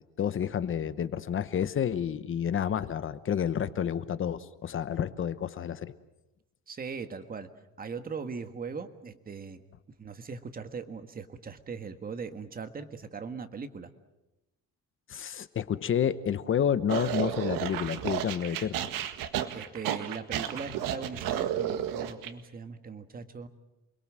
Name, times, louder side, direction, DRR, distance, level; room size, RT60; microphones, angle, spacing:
voice 1, 0.0-5.9 15.1-18.8, left 8 dB, 40° left, 13 dB, 1.0 m, -30 dB
voice 2, 6.7-7.5 7.8-9.6 10.0-13.9 19.5-23.5, right 5 dB, 25° right, 9 dB, 1.6 m, -39 dB
sound 1, 16.9-22.3, right 10 dB, 80° right, 1.8 m, -32 dB
28.5 x 21.5 x 7.6 m, 0.96 s
cardioid pair, 145°, 33 cm